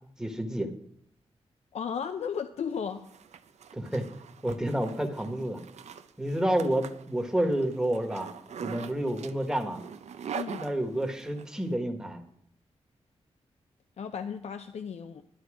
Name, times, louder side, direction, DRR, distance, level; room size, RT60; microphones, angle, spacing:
voice 1, 0.2-0.7 3.7-4.0 4.4-5.6 6.2-8.3 8.6-9.8 10.5-12.2, right 1 dB, 5° right, 4 dB, 1.3 m, -29 dB
voice 2, 1.7-3.0 10.3-10.6 14.0-15.2, left 7 dB, 75° left, 8 dB, 0.6 m, -34 dB
Zipper (clothing), 2.8-11.5, right 7 dB, 85° right, 0.6 m, -43 dB
12.0 x 10.5 x 4.9 m, 0.69 s
wide cardioid pair, 165°, 11 cm